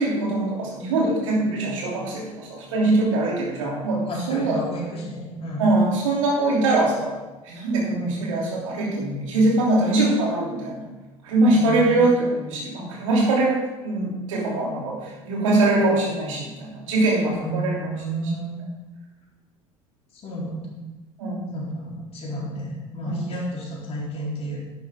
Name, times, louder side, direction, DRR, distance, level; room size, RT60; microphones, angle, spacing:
voice 1, 0.0-4.6 5.6-7.1 7.4-10.9 11.2-17.8 21.2-21.5 23.0-23.2, right 2 dB, 70° right, -2 dB, 3.0 m, -22 dB
voice 2, 4.0-5.7 7.9-8.1 11.5-12.1 17.2-18.6 20.1-20.8 21.5-24.6, right 1 dB, 35° left, -5 dB, 3.8 m, -31 dB
11.0 x 9.5 x 3.7 m, 1.1 s
figure-of-eight pair, 65°, 17 cm